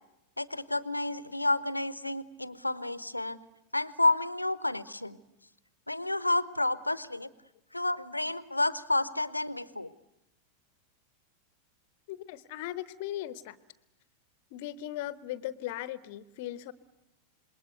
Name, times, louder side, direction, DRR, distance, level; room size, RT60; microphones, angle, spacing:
voice 1, 0.4-3.4 3.7-5.2 5.9-7.3 7.7-9.9, left 2 dB, 85° left, 18 dB, 0.9 m, -30 dB
voice 2, 12.1-13.6 14.5-16.7, left 13 dB, 50° left, 17 dB, 0.9 m, -38 dB
27.5 x 21.5 x 8.1 m, 0.95 s
figure-of-eight pair, 90°, 0 cm